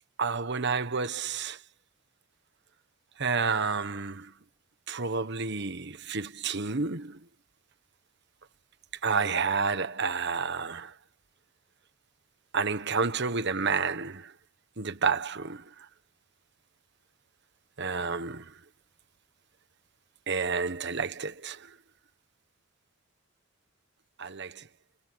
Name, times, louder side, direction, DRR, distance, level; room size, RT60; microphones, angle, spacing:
voice 1, 0.2-1.6 3.2-4.3 4.9-7.2 9.0-10.9 12.5-14.3 14.8-15.6 17.8-18.5 20.3-21.7 24.2-24.6, right 5 dB, 55° right, 1.3 m, -30 dB
head